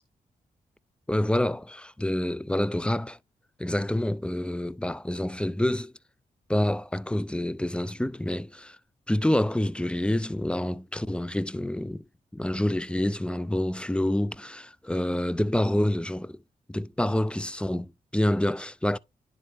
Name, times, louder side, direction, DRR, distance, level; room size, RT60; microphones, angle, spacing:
voice 1, 1.1-3.2 3.6-5.9 6.5-8.8 9.1-12.0 12.3-16.4 16.7-19.0, left 1 dB, 5° left, 0.5 m, -27 dB
10.5 x 3.8 x 3.5 m
supercardioid pair, 45°, 16 cm